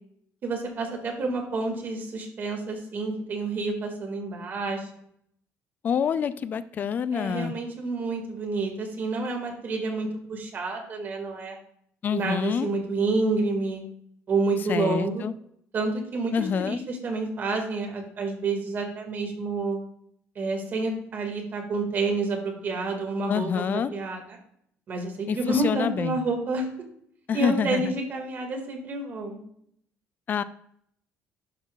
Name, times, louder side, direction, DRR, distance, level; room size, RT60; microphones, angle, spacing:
voice 1, 0.4-5.0 7.1-11.6 12.1-13.8 14.3-15.3 15.7-19.8 20.4-24.2 24.9-26.7 27.3-29.4, right 3 dB, 40° right, 2 dB, 1.9 m, -29 dB
voice 2, 5.8-7.5 12.0-12.7 14.7-15.3 16.3-16.8 23.3-23.9 25.3-26.2 27.3-27.9 30.3-30.4, left 7 dB, 35° left, 15 dB, 0.4 m, -27 dB
11.5 x 5.6 x 2.3 m, 0.69 s
cardioid pair, 140°, 5 cm